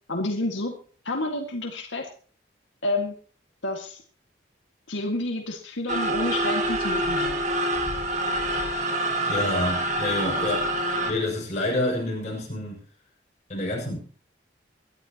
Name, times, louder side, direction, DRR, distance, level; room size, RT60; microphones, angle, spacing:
voice 1, 0.1-0.8 1.0-2.1 2.8-3.1 3.6-4.0 4.9-7.4, left 2 dB, 85° left, 2 dB, 2.1 m, -29 dB
sound 1, 5.9-11.1, right 1 dB, 40° right, 2.1 m, -26 dB
voice 2, 9.3-12.8 13.5-14.1, left 1 dB, 40° left, -1 dB, 6.9 m, -28 dB
23.5 x 12.0 x 3.0 m, 0.41 s
head